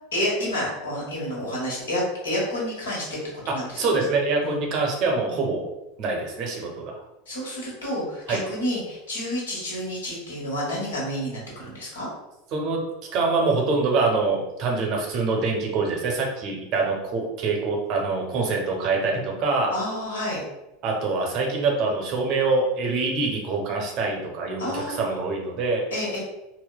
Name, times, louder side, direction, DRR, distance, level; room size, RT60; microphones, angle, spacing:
voice 1, 0.1-3.2 3.5-4.0 4.4-4.6 5.3-5.4 7.3-12.1 19.7-20.4 24.6-25.1 25.9-26.2, equal, 75° left, -4 dB, 1.3 m, -29 dB
voice 2, 3.5-5.7 6.0-7.0 8.3-8.4 12.5-12.8 13.1-19.7 20.8-25.8, right 3 dB, 45° right, 0 dB, 0.8 m, -25 dB
4.1 x 2.1 x 2.2 m, 0.94 s
figure-of-eight pair, 80°, 0 cm